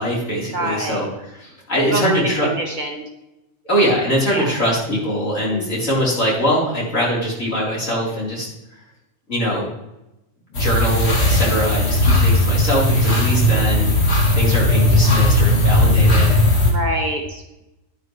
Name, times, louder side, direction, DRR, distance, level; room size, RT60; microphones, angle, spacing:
voice 1, 0.0-2.5 3.6-8.8 9.3-9.7 10.5-13.9 14.3-16.3, equal, 75° left, -5 dB, 4.2 m, -22 dB
voice 2, 0.5-1.0 1.8-3.0 4.3-4.6 5.5-6.0 13.3-13.4 16.6-17.6, right 1 dB, 35° right, 1 dB, 1.6 m, -26 dB
sound 1, 10.6-16.7, left 1 dB, 55° left, 2.1 m, -16 dB
11.0 x 10.5 x 3.2 m, 0.91 s
omnidirectional pair, 1.4 m